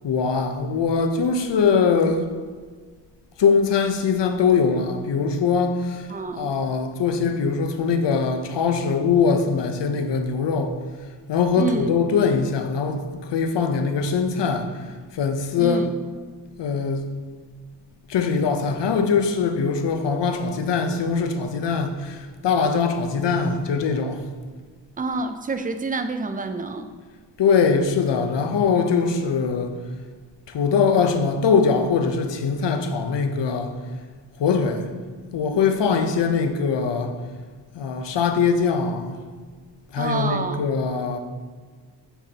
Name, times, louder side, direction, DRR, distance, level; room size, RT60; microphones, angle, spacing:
voice 1, 0.0-2.3 3.4-6.1 6.4-10.8 11.3-14.8 15.1-15.8 16.6-17.1 18.1-24.2 27.4-29.7 30.5-33.7 34.4-34.9 35.3-37.2 37.7-39.2 39.9-41.2, left 5 dB, 80° left, 0.8 m, -22 dB
voice 2, 6.1-6.5 11.6-11.9 15.6-15.9 25.0-26.9 40.0-40.6, right 3 dB, 20° right, 0.4 m, -27 dB
8.1 x 5.8 x 2.9 m
wide cardioid pair, 115°, 41 cm